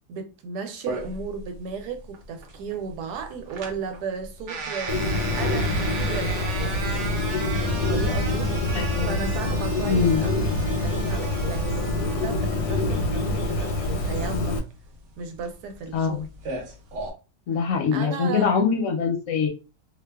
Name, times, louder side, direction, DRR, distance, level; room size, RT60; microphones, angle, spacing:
voice 1, 0.1-7.2 7.6-8.5 9.0-14.6 15.2-16.3 17.9-18.5, right 5 dB, 85° right, 1.1 m, -35 dB
sound 1, 0.9-17.1, right 4 dB, 60° right, 0.8 m, -37 dB
Bird, 4.9-14.6, left 2 dB, 85° left, 1.2 m, -26 dB
sound 2, 7.6-13.1, left 2 dB, 5° right, 0.8 m, -36 dB
voice 2, 8.7-9.2 9.8-10.3 15.9-16.3 17.5-19.5, left 5 dB, 70° left, 0.9 m, -23 dB
2.7 x 2.2 x 2.2 m
omnidirectional pair, 1.7 m